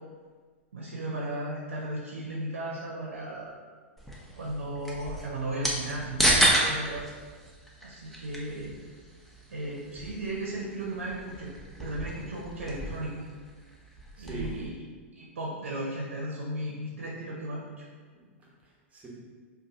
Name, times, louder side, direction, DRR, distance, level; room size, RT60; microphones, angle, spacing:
voice 1, 0.7-3.5 4.4-7.0 7.8-8.8 9.5-11.5 11.8-13.2 14.2-14.7 15.1-17.9, right 1 dB, 80° right, -3 dB, 0.6 m, -35 dB
sound 1, 4.0-14.7, equal, ahead, 0.6 m, -32 dB
voice 2, 14.2-14.7 18.1-19.1, right 3 dB, 20° right, -4 dB, 0.9 m, -42 dB
2.6 x 2.4 x 3.6 m, 1.6 s
hypercardioid pair, 105°, 7 cm